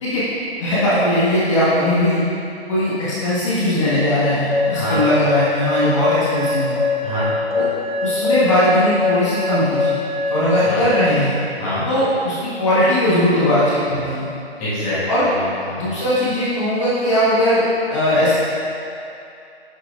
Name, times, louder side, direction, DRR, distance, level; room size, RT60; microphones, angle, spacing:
voice 1, 0.6-2.2 2.7-6.8 7.5-7.7 8.0-10.0 10.3-11.4 11.9-14.3 15.1-15.3 15.8-18.3, left 1 dB, 30° left, -11 dB, 1.6 m, -19 dB
sound 1, 4.5-11.1, left 4 dB, 65° left, 1.4 m, -22 dB
voice 2, 4.7-5.1 7.0-7.3 10.6-10.8 11.6-11.9 14.6-15.9, left 1 dB, 10° left, -14 dB, 1.7 m, -25 dB
11.5 x 6.4 x 2.5 m, 2.6 s
hypercardioid pair, 170°, 32 cm